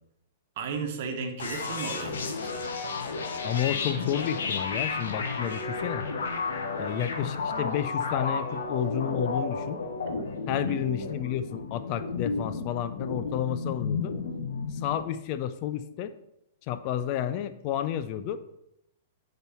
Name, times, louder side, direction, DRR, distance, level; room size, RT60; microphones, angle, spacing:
voice 1, 0.6-2.7 10.5-10.8, right 5 dB, 50° right, 5 dB, 1.2 m, -35 dB
sound 1, 1.4-15.0, left 4 dB, 60° left, 1.0 m, -32 dB
voice 2, 3.4-6.0 6.8-9.8 10.5-14.1 14.7-16.1 16.7-18.4, left 10 dB, 40° left, 12 dB, 0.4 m, -31 dB
10.0 x 4.1 x 4.3 m, 0.82 s
figure-of-eight pair, 105°, 0 cm